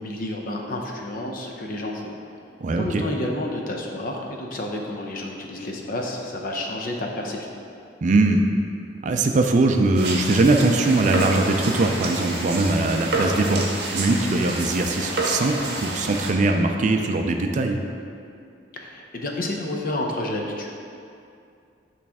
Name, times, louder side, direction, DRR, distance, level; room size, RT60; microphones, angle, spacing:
voice 1, 0.0-2.1 2.7-7.5 18.7-20.7, left 1 dB, 50° left, 1 dB, 0.6 m, -30 dB
voice 2, 2.6-3.0 8.0-8.4 9.0-13.6 13.9-17.8, right 2 dB, 45° right, 4 dB, 0.4 m, -21 dB
sound 1, 9.9-16.3, right 2 dB, 60° right, 0.8 m, -29 dB
8.4 x 3.2 x 3.5 m, 2.5 s
head